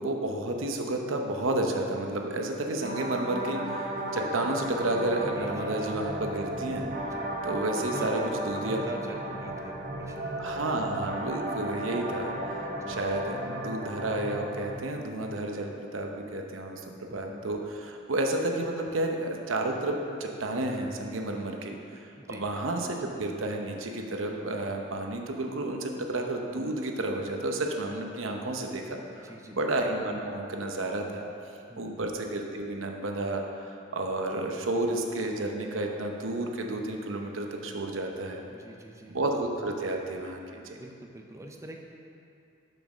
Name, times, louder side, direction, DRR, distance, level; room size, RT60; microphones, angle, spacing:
voice 1, 0.0-6.8 7.4-8.2 8.5-8.8 10.4-31.2 31.8-38.4 39.1-40.8, right 2 dB, 80° right, 2 dB, 0.9 m, -31 dB
sound 1, 2.8-14.8, right 1 dB, 45° right, 0.9 m, -35 dB
voice 2, 5.4-6.0 7.0-7.4 7.9-8.3 8.5-10.4 12.8-13.0 17.1-17.5 22.2-22.5 29.2-29.6 31.7-32.0 38.5-39.2 40.7-41.8, right 1 dB, 15° right, 2 dB, 0.5 m, -44 dB
6.7 x 6.3 x 6.2 m, 2.6 s
head